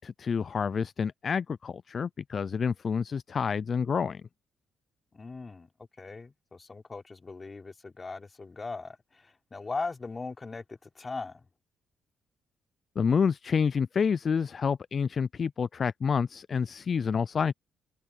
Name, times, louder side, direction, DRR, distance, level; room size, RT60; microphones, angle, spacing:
voice 1, 0.0-4.2 13.0-17.5, left 6 dB, 45° left, 0.3 m, -28 dB
voice 2, 5.1-11.4, left 3 dB, 30° left, 3.8 m, -39 dB
cardioid pair, 90°, 0 cm